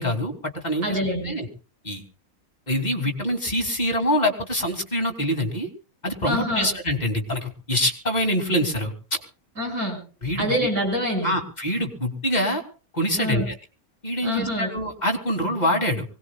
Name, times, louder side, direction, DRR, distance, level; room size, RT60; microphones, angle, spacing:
voice 1, 0.0-1.0 1.2-1.5 1.8-2.0 2.7-5.7 6.0-9.2 10.2-10.5 11.2-12.6 12.9-13.5 14.0-16.0, equal, 30° left, 2 dB, 2.9 m, -25 dB
voice 2, 0.8-1.3 6.3-6.7 9.6-10.0 10.4-11.3 13.2-13.5 14.2-14.7, equal, 80° right, 2 dB, 7.3 m, -26 dB
24.5 x 19.5 x 2.3 m, 0.38 s
omnidirectional pair, 1.6 m